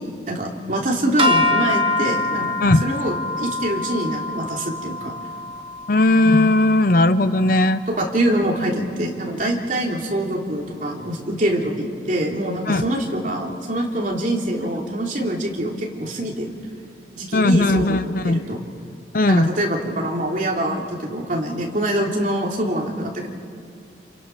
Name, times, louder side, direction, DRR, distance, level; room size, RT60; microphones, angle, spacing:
voice 1, 0.3-2.5 2.8-5.1 7.9-16.5 17.1-18.6 19.2-23.3, right 1 dB, 45° right, -1 dB, 3.2 m, -24 dB
sound 1, 1.2-7.5, left 2 dB, 30° right, 1.4 m, -25 dB
voice 2, 2.6-2.9 5.9-7.8 12.7-12.9 17.3-18.4 19.1-19.5, left 2 dB, 50° left, 12 dB, 0.7 m, -17 dB
28.5 x 28.0 x 6.0 m, 2.3 s
head